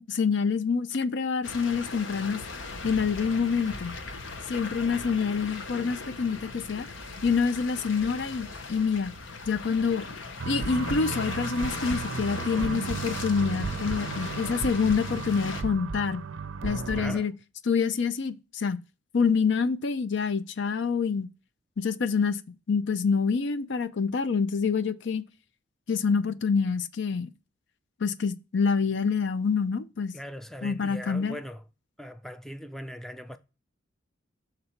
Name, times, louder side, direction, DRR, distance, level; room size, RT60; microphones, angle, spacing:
voice 1, 0.0-2.4 2.8-3.9 4.5-6.9 7.2-9.1 9.5-10.1 10.5-16.2 16.6-17.3 17.7-18.8 19.1-21.3 21.8-22.4 22.7-25.2 25.9-27.3 28.0-30.1 30.6-31.4, left 5 dB, 65° left, 0.5 m, -26 dB
sound 1, 1.4-15.6, left 3 dB, 80° left, 0.9 m, -38 dB
sound 2, 10.4-17.2, right 5 dB, 80° right, 0.5 m, -34 dB
voice 2, 17.0-17.3 30.1-31.6 32.0-33.4, equal, ahead, 0.4 m, -40 dB
6.7 x 3.9 x 4.3 m
head